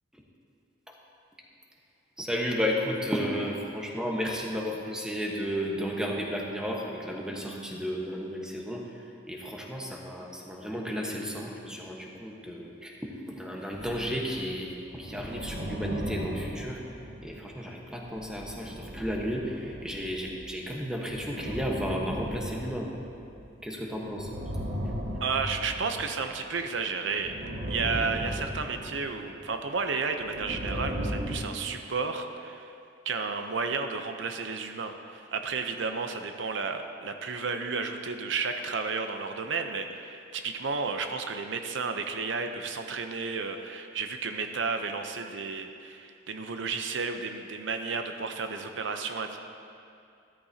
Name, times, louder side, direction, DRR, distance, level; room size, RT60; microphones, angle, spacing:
voice 1, 2.2-8.8 9.3-16.8 17.2-22.9 23.6-24.3, equal, 5° right, -2 dB, 1.1 m, -33 dB
sound 1, 13.7-14.5 14.8-17.6 18.0-20.6 21.0-23.6 24.0-26.5 27.1-29.6 30.1-31.4, equal, 55° right, 1.4 m, -37 dB
voice 2, 25.2-27.3 27.7-32.7 33.0-49.4, right 4 dB, 75° right, 6 dB, 0.7 m, -32 dB
13.5 x 13.0 x 2.8 m, 2.5 s
head